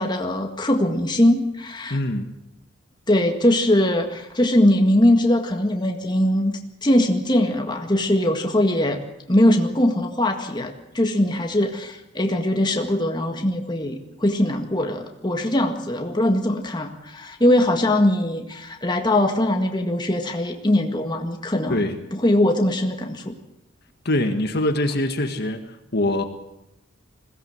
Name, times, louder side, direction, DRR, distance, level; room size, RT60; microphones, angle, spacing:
voice 1, 0.0-2.0 3.1-9.0 9.3-23.3, left 1 dB, 20° left, 3 dB, 1.8 m, -21 dB
voice 2, 1.9-2.3 21.7-22.0 24.1-25.7 25.9-26.2, left 1 dB, 50° left, 6 dB, 1.7 m, -23 dB
21.5 x 17.0 x 8.0 m, 0.86 s
head